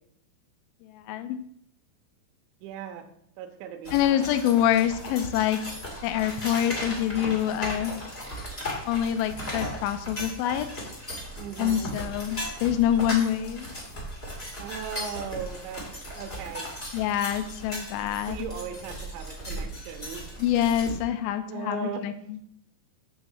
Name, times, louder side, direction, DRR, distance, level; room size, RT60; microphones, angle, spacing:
voice 1, 0.8-1.4 3.9-5.6 6.0-8.0 8.8-10.7 11.6-13.7 16.9-18.5 20.4-22.5, left 10 dB, 80° left, 10 dB, 2.8 m, -26 dB
voice 2, 2.6-3.1 3.4-4.3 11.4-11.9 14.6-15.8 16.2-16.6 18.2-20.2 21.5-22.0, right 6 dB, 75° right, 4 dB, 2.8 m, -37 dB
sound 1, 3.8-21.0, equal, 55° left, 0.6 m, -37 dB
8.9 x 4.1 x 7.1 m, 0.70 s
omnidirectional pair, 5.9 m